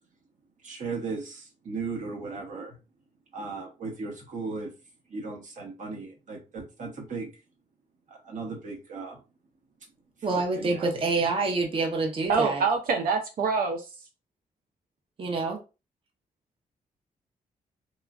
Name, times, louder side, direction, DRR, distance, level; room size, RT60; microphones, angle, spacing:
voice 1, 0.6-2.8 3.3-4.7 5.1-7.3 8.3-9.2 10.3-10.9, right 4 dB, 60° right, 0.9 m, -36 dB
voice 2, 10.2-12.6 15.2-15.6, right 3 dB, 35° right, 0.6 m, -27 dB
voice 3, 12.3-13.9, right 5 dB, 85° right, 0.4 m, -25 dB
3.0 x 2.3 x 2.3 m
wide cardioid pair, 125°, 15 cm